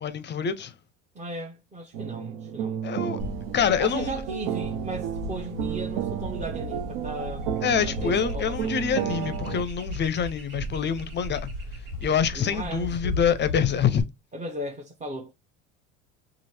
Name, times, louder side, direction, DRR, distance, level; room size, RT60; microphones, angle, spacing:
voice 1, 0.0-0.7 2.8-3.2 3.5-4.1 7.6-11.5 12.0-14.0, left 7 dB, 30° left, 0.5 m, -26 dB
voice 2, 1.1-2.8 3.8-7.5 7.8-8.9 12.3-13.2 14.3-15.3, right 1 dB, 20° right, 0.8 m, -36 dB
sound 1, 1.9-9.6, right 9 dB, 65° right, 0.6 m, -32 dB
sound 2, 3.2-14.0, left 1 dB, 90° right, 1.3 m, -36 dB
3.1 x 2.5 x 4.2 m
hypercardioid pair, 75°, 39 cm